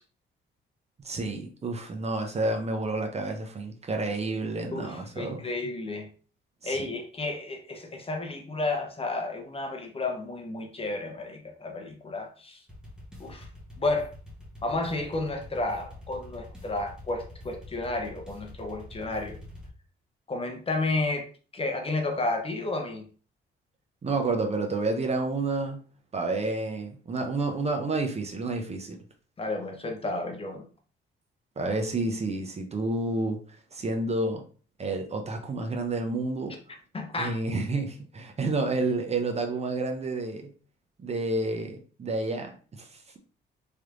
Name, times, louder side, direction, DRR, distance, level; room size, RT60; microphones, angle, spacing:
voice 1, 1.0-5.5 6.6-6.9 24.0-25.8 26.1-29.0 31.6-33.4 33.7-34.4 34.8-36.6 37.2-40.5 41.0-43.2, right 2 dB, 30° right, 0.6 m, -30 dB
voice 2, 4.7-6.1 6.6-12.6 13.2-13.5 13.8-14.1 14.6-19.4 20.3-21.3 21.5-23.0 29.4-30.7 36.9-37.4, left 2 dB, 30° left, 0.7 m, -32 dB
sound 1, 12.7-19.7, left 1 dB, 5° right, 1.1 m, -46 dB
3.3 x 3.0 x 2.5 m
cardioid pair, 90°, 20 cm